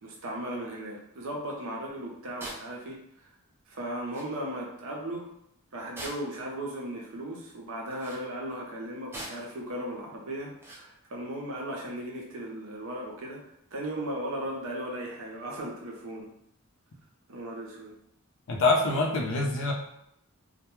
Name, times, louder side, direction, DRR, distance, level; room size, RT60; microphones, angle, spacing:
voice 1, 0.0-3.0 3.7-5.3 5.7-13.4 13.7-16.3 17.3-17.9, right 1 dB, 65° right, -2 dB, 0.6 m, -36 dB
sound 1, 2.4-2.7 3.8-3.9 4.1-4.3 6.0-6.4 7.9-8.2 9.1-9.5 10.6-10.9, right 1 dB, 10° right, 0.3 m, -41 dB
voice 2, 18.5-19.7, left 2 dB, 55° left, 0 dB, 0.5 m, -25 dB
2.1 x 2.1 x 3.0 m, 0.76 s
head